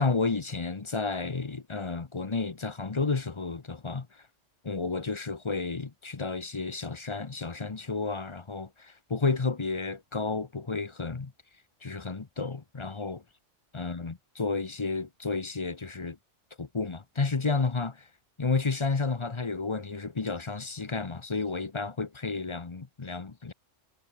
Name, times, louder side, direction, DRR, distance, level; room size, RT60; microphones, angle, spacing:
voice 1, 0.0-4.1 4.6-11.3 11.8-13.2 13.7-16.2 16.6-18.0 18.4-23.5, left 4 dB, 25° left, 0.8 m, -31 dB
omnidirectional pair, 1.3 m